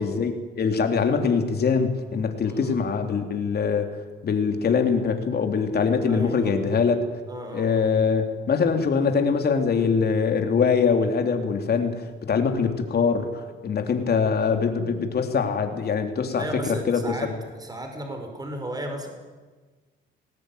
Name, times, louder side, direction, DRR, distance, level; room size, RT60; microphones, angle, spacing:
voice 1, 0.0-3.9 4.2-7.0 7.5-17.0, left 5 dB, 55° left, 5 dB, 3.3 m, -23 dB
voice 2, 2.4-2.9 6.1-6.6 7.3-7.9 16.3-17.3 17.5-19.1, right 1 dB, 20° right, 4 dB, 5.5 m, -35 dB
20.5 x 18.5 x 9.3 m, 1.4 s
cardioid pair, 90°, 20 cm